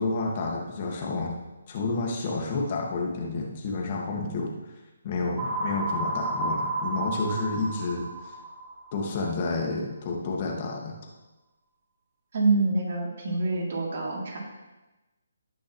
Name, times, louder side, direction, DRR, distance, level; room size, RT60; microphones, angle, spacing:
voice 1, 0.0-1.3 1.7-4.5 5.0-8.3 8.9-10.9, left 3 dB, 35° left, -1 dB, 1.9 m, -30 dB
sound 1, 5.4-9.2, right 2 dB, 15° right, 3.2 m, -31 dB
voice 2, 12.3-14.4, right 3 dB, 55° right, -2 dB, 3.1 m, -26 dB
17.5 x 6.2 x 3.2 m, 1.1 s
hypercardioid pair, 155°, 0 cm